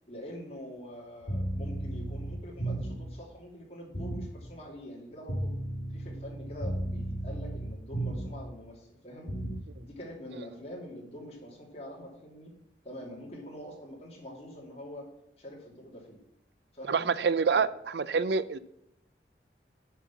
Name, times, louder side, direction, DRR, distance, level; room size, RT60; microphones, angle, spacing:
voice 1, 0.1-5.5 5.9-9.3 9.8-12.5 12.8-15.1 15.4-16.2 16.7-17.1, equal, 35° left, -2 dB, 2.8 m, -45 dB
sound 1, 1.2-3.1 3.9-4.3 5.3-8.5 9.3-9.7, right 1 dB, 60° left, 2.2 m, -34 dB
voice 2, 16.9-18.6, right 5 dB, 70° right, 16 dB, 0.4 m, -27 dB
7.3 x 5.8 x 6.9 m, 0.83 s
head